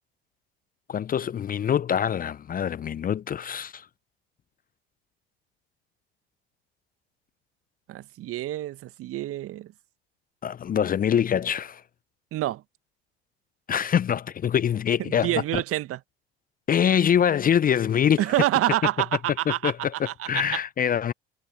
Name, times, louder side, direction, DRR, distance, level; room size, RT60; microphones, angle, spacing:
voice 1, 0.9-3.9 10.4-11.8 13.7-15.6 16.7-18.2 19.5-21.1, left 8 dB, 30° left, 0.7 m, -24 dB
voice 2, 7.9-9.7 12.3-12.6 15.0-16.0 18.2-19.7 20.0-20.4, right 14 dB, 45° right, 1.7 m, -27 dB
figure-of-eight pair, 65°, 31 cm